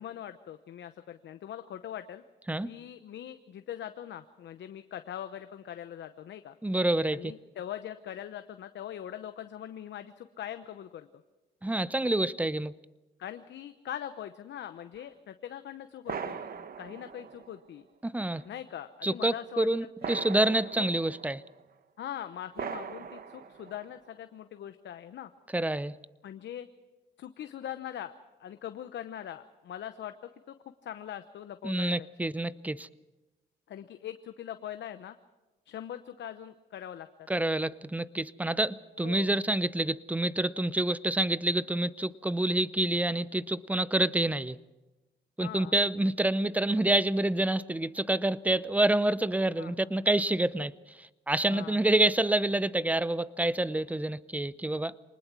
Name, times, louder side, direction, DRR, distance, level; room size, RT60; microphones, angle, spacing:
voice 1, 0.0-2.2 2.6-6.6 7.1-11.1 13.2-16.5 16.8-17.8 18.4-20.2 20.8-20.9 22.0-25.3 26.2-26.7 27.2-28.1 28.4-30.3 30.8-32.1 33.7-35.2 35.7-37.1 39.0-39.3 45.4-45.7 49.6-49.7 51.5-51.8, left 10 dB, 65° left, 9 dB, 0.9 m, -42 dB
voice 2, 6.6-7.3 11.6-12.7 18.0-18.4 19.0-21.4 25.5-26.0 31.6-32.9 37.3-44.6 45.4-54.9, right 1 dB, 5° right, 17 dB, 0.6 m, -27 dB
sound 1, 15.0-15.1 16.1-17.9 18.4-18.5 20.0-21.6 22.6-24.1, right 6 dB, 50° right, 1.1 m, -40 dB
24.0 x 19.5 x 6.1 m, 1.1 s
cardioid pair, 90°, 20 cm